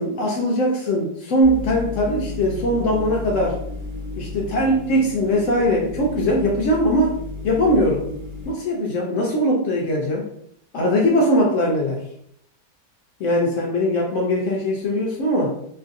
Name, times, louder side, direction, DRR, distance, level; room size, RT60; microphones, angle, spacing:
voice 1, 0.0-3.6 4.2-7.1 7.4-8.1 8.5-10.2 10.7-12.0 13.2-15.5, equal, 75° left, -2 dB, 0.7 m, -20 dB
sound 1, 1.4-8.5, left 3 dB, 45° right, 0.6 m, -33 dB
3.0 x 2.5 x 2.5 m, 0.71 s
omnidirectional pair, 1.8 m